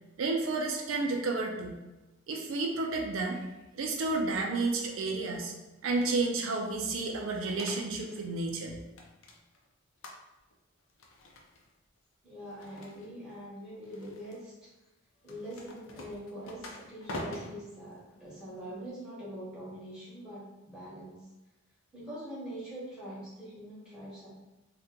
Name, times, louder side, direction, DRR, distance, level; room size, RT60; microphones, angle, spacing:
voice 1, 0.2-1.8 2.3-3.4 3.8-5.5 5.8-8.7, right 3 dB, 70° right, 1 dB, 0.4 m, -31 dB
sound 1, 5.8-6.4 7.1-8.3 8.6-9.6 10.0-10.5 10.9-11.7 12.4-13.3 13.8-14.4 15.2-18.9, left 1 dB, 75° left, 0.5 m, -46 dB
voice 2, 12.2-14.7 15.2-21.3 21.9-24.3, equal, 5° right, -10 dB, 1.2 m, -43 dB
2.8 x 2.2 x 3.7 m, 1.1 s
head